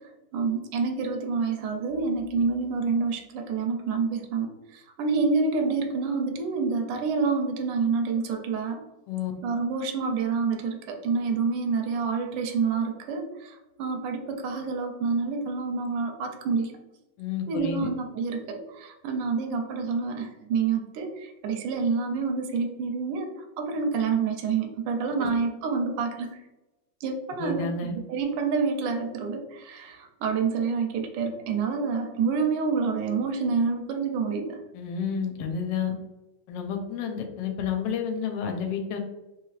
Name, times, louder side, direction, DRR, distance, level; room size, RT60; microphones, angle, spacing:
voice 1, 0.3-8.8 9.4-16.7 17.5-26.4 27.0-27.7 28.1-34.6, right 5 dB, 80° right, 3 dB, 1.2 m, -28 dB
voice 2, 17.2-17.9 25.2-25.3 27.4-27.9 34.7-35.9 36.5-39.0, left 6 dB, 75° left, 4 dB, 1.2 m, -30 dB
3.2 x 3.1 x 2.3 m, 1.0 s
omnidirectional pair, 2.1 m